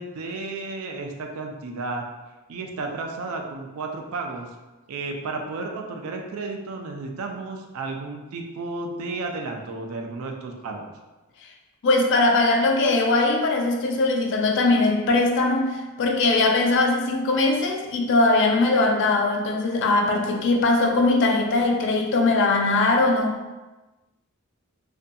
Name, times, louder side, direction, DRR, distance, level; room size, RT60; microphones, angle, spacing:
voice 1, 0.0-2.0 2.5-4.5 4.9-10.9, right 3 dB, 70° right, 2 dB, 0.4 m, -32 dB
voice 2, 11.8-23.3, left 2 dB, 55° left, 2 dB, 0.4 m, -20 dB
2.6 x 2.2 x 2.5 m, 1.1 s
head